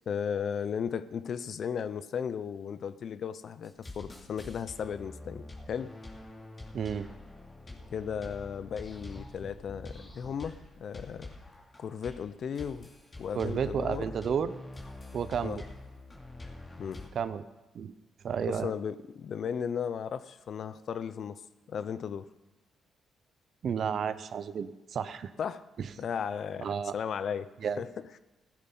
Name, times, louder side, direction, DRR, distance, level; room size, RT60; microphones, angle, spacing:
voice 1, 0.1-5.9 7.9-11.3 11.8-12.9 13.2-14.1 15.4-15.6 16.8-17.0 18.4-21.4 21.7-22.3 25.4-25.7 26.0-28.2, left 7 dB, 60° left, 0.7 m, -35 dB
sound 1, 3.6-17.1, left 2 dB, 30° left, 3.1 m, -46 dB
voice 2, 6.7-7.1 13.3-14.5 15.1-15.6 17.1-17.4 17.7-17.9 18.2-18.7 23.6-25.3 25.8-25.9 26.6-27.0 27.6-27.8, right 7 dB, 55° right, 0.8 m, -32 dB
16.0 x 12.5 x 5.7 m
cardioid pair, 90°, 0 cm